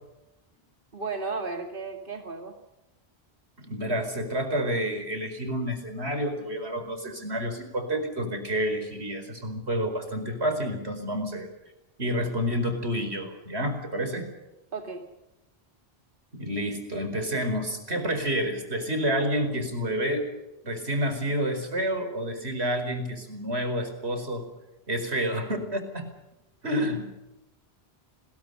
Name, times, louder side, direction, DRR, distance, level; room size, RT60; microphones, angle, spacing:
voice 1, 0.9-2.5 14.7-15.0, right 4 dB, 55° right, 3 dB, 2.6 m, -34 dB
voice 2, 3.7-11.5 12.0-14.3 16.3-20.3 20.6-24.4 24.9-26.1 26.6-27.1, equal, 85° right, 7 dB, 5.0 m, -29 dB
30.0 x 21.5 x 5.6 m, 0.95 s
omnidirectional pair, 1.1 m